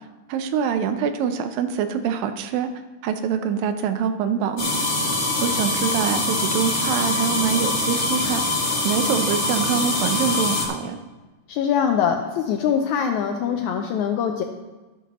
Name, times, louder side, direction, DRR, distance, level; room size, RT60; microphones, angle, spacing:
voice 1, 0.3-2.7 3.0-4.8 5.4-8.4 8.8-11.0, right 7 dB, 85° right, 9 dB, 2.5 m, -25 dB
sound 1, 4.6-10.7, left 2 dB, 35° left, 2.6 m, -23 dB
voice 2, 11.5-14.4, left 7 dB, 80° left, 5 dB, 1.7 m, -23 dB
12.0 x 11.5 x 3.0 m, 1.2 s
omnidirectional pair, 3.9 m